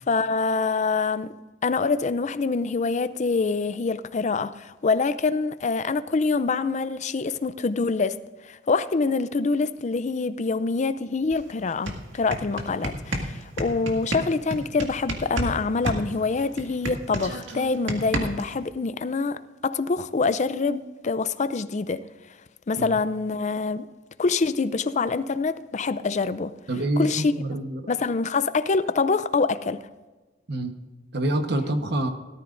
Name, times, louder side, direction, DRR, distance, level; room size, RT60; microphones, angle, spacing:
voice 1, 0.1-1.3 1.6-8.2 8.4-22.0 22.7-23.9 24.2-26.5 27.0-27.3 27.9-29.8, left 4 dB, 40° left, 0.5 m, -25 dB
sound 1, 11.3-11.4 11.7-15.5 15.8-18.5, right 1 dB, 90° right, 1.9 m, -30 dB
voice 2, 26.7-27.9 30.5-30.7 31.1-32.1, right 1 dB, 60° right, 1.1 m, -26 dB
18.0 x 13.5 x 2.6 m
head